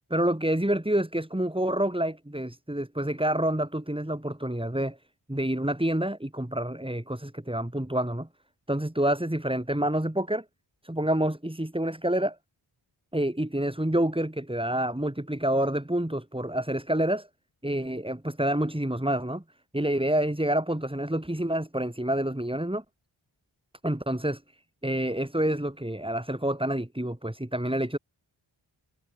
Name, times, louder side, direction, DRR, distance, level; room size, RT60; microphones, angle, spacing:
voice 1, 0.1-5.0 5.3-8.3 8.7-10.4 10.8-12.4 13.1-17.3 17.6-19.4 19.7-22.8 23.8-24.4 24.8-28.0, right 1 dB, 10° right, 3.0 m, -28 dB
wide cardioid pair, 50°, 49 cm